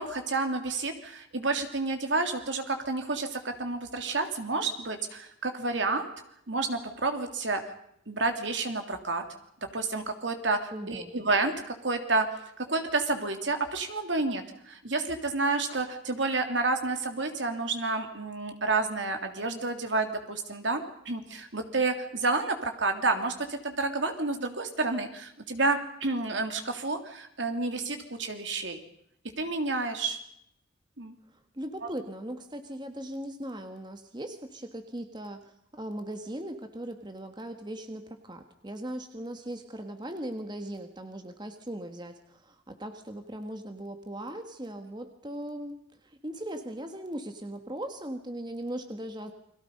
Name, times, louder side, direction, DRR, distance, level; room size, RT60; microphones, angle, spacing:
voice 1, 0.0-6.1 6.5-7.7 8.1-9.2 9.7-12.3 12.6-28.8 29.4-30.2 31.0-31.1 31.8-31.9, right 3 dB, 70° right, 6 dB, 3.0 m, -30 dB
voice 2, 10.7-11.1 31.5-49.3, right 1 dB, 25° right, 6 dB, 1.6 m, -39 dB
29.5 x 22.5 x 5.4 m, 0.74 s
head